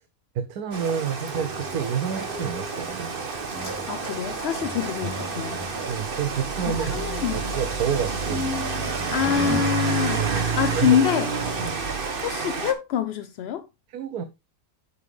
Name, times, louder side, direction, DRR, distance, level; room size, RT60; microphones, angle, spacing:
voice 1, 0.3-3.2 5.9-7.0 7.3-8.6 10.2-10.5 10.7-11.0 11.6-11.8 13.9-14.3, right 8 dB, 85° right, 1.2 m, -29 dB
Rain, 0.7-12.7, right 4 dB, 40° right, 1.3 m, -29 dB
sound 1, 1.3-6.1 6.7-9.6, left 1 dB, 5° right, 0.4 m, -37 dB
Slam, 2.3-11.3, equal, 10° left, 3.8 m, -47 dB
voice 2, 3.9-5.6 6.8-7.6 9.1-11.3 12.2-13.7, left 8 dB, 65° left, 0.6 m, -25 dB
8.3 x 7.1 x 3.3 m
omnidirectional pair, 1.5 m